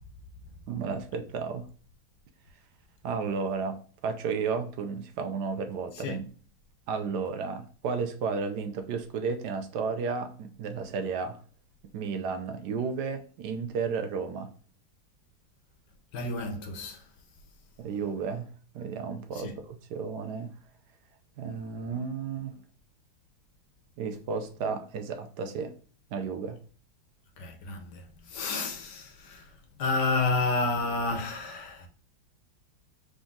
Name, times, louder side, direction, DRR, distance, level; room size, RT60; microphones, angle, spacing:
voice 1, 0.7-1.7 3.0-6.2 6.9-11.4 11.9-14.5 17.8-20.5 21.4-22.6 24.0-25.7 26.1-26.6, right 5 dB, 70° right, 1.0 m, -33 dB
voice 2, 5.9-6.2 16.1-17.1 19.3-19.6 27.4-31.9, left 3 dB, 65° left, 1.4 m, -31 dB
3.8 x 3.5 x 3.7 m
omnidirectional pair, 2.2 m